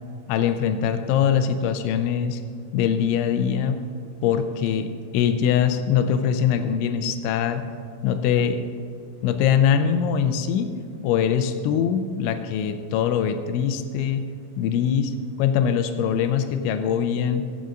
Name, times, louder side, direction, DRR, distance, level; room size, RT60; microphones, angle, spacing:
voice 1, 0.3-2.4 2.7-3.8 4.2-7.6 8.0-8.6 9.2-10.7 11.0-14.3 14.6-15.1 15.4-17.4, left 8 dB, 90° left, 8 dB, 3.0 m, -22 dB
24.5 x 8.4 x 2.6 m, 2.1 s
omnidirectional pair, 5.3 m